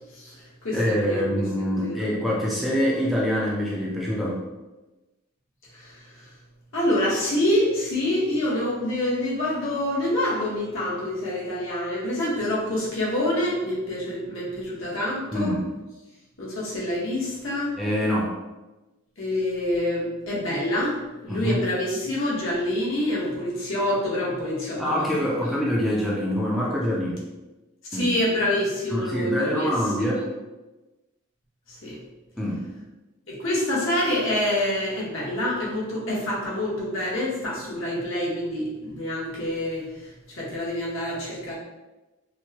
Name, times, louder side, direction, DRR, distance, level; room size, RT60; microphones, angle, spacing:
voice 1, 0.1-1.3 1.8-2.0 5.7-6.3 6.7-15.5 16.4-17.8 19.2-25.0 27.9-29.7 30.0-30.3 31.7-32.0 33.3-41.6, left 1 dB, 70° left, -6 dB, 1.1 m, -27 dB
voice 2, 0.7-4.4 15.3-15.7 17.8-18.3 21.3-21.6 24.8-27.2 27.9-28.1 28.9-30.3 32.4-32.6, equal, ahead, -6 dB, 0.5 m, -25 dB
4.5 x 2.1 x 2.8 m, 1.1 s
head